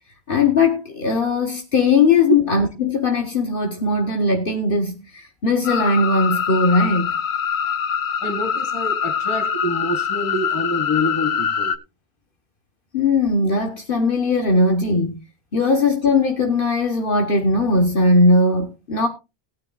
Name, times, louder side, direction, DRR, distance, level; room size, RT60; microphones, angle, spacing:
voice 1, 0.3-7.1 12.9-15.2 15.5-19.1, left 3 dB, 60° left, 1.3 m, -19 dB
sound 1, 5.6-11.8, left 7 dB, 90° left, 1.1 m, -24 dB
voice 2, 8.2-11.7, equal, 30° left, 1.9 m, -26 dB
18.0 x 9.5 x 2.2 m
omnidirectional pair, 1.0 m